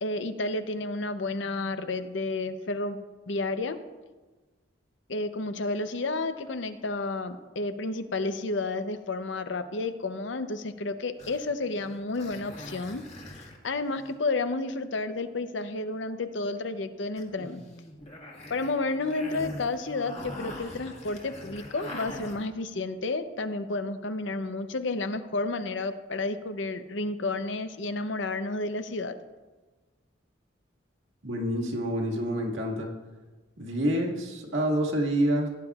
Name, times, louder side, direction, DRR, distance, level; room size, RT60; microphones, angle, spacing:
voice 1, 0.0-3.8 5.1-13.1 13.6-17.6 18.5-29.1, left 2 dB, 70° left, 10 dB, 0.7 m, -31 dB
sound 1, 11.2-14.2 17.2-22.6, left 1 dB, 35° left, 1.6 m, -43 dB
voice 2, 31.2-32.9 33.6-35.5, right 1 dB, 75° right, -1 dB, 1.9 m, -27 dB
17.0 x 9.8 x 2.4 m, 1.3 s
head